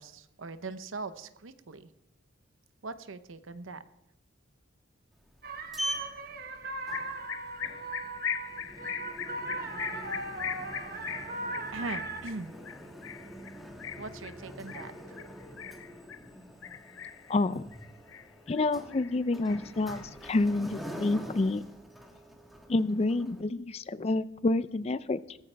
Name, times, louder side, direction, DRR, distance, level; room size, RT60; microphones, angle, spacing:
voice 1, 0.0-1.9 2.8-3.8 11.7-12.5 14.0-15.2, right 3 dB, 85° right, 12 dB, 0.8 m, -40 dB
Sliding door, 5.1-23.4, equal, ahead, 1.4 m, -44 dB
sound 1, 5.4-12.2, right 3 dB, 50° right, 1.3 m, -39 dB
sound 2, 6.9-16.3 16.6-17.3 17.7-18.6 18.9-20.3, left 8 dB, 85° left, 0.7 m, -39 dB
voice 2, 17.3-17.7 18.5-21.6 22.7-25.4, left 2 dB, 30° left, 16 dB, 0.4 m, -28 dB
16.5 x 15.0 x 3.4 m, 0.86 s
head